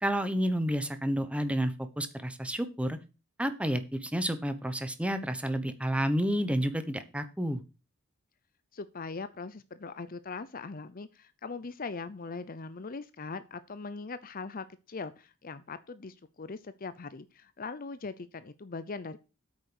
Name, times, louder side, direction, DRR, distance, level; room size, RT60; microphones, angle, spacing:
voice 1, 0.0-3.0 3.4-7.6, equal, 5° right, 10 dB, 1.0 m, -30 dB
voice 2, 8.7-19.2, left 4 dB, 40° left, 14 dB, 0.6 m, -40 dB
8.8 x 6.4 x 6.2 m, 0.31 s
head